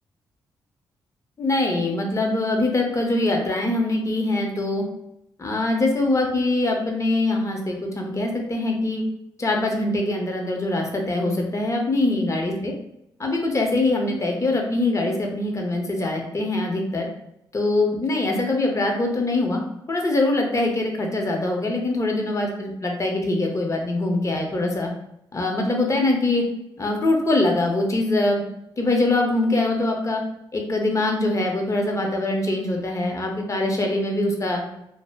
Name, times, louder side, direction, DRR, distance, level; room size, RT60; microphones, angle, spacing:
voice 1, 1.4-4.8 5.4-9.0 9.4-12.7 13.2-17.1 17.5-19.6 19.9-24.9 25.3-26.4 26.8-28.4 28.8-30.2 30.5-34.6, left 2 dB, 30° left, 1 dB, 0.7 m, -23 dB
2.1 x 2.0 x 3.3 m, 0.81 s
hypercardioid pair, 45°, 10 cm